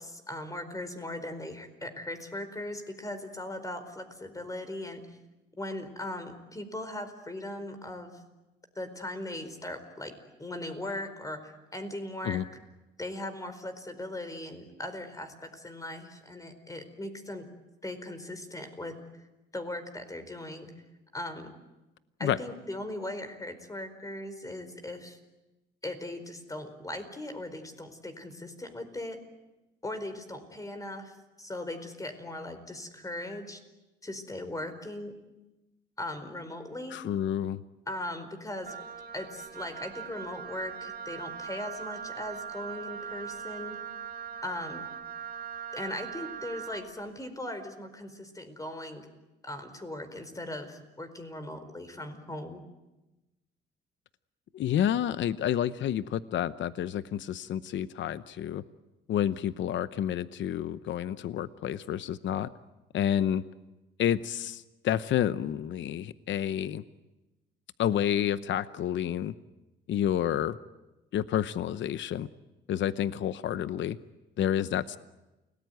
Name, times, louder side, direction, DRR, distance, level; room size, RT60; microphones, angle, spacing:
voice 1, 0.0-5.2 5.6-8.2 8.7-10.1 10.4-12.4 13.0-17.5 17.8-19.0 19.5-20.7 21.1-21.5 22.2-25.2 25.8-29.2 29.8-31.1 31.4-33.6 34.0-35.1 36.0-37.0 37.9-38.8 39.1-43.8 44.4-44.9 45.7-49.1 49.4-52.6, left 1 dB, 15° left, 9 dB, 4.7 m, -39 dB
voice 2, 36.9-37.6 54.5-58.6 59.1-62.5 62.9-63.4 64.0-66.8 67.8-69.3 69.9-70.6 71.1-72.3 72.7-74.0 74.4-75.0, left 10 dB, 70° left, 14 dB, 0.9 m, -29 dB
Wind instrument woodwind instrument, 38.6-46.9, right 7 dB, 50° right, 2.6 m, -40 dB
29.5 x 19.0 x 9.4 m, 1.0 s
cardioid pair, 90°, 20 cm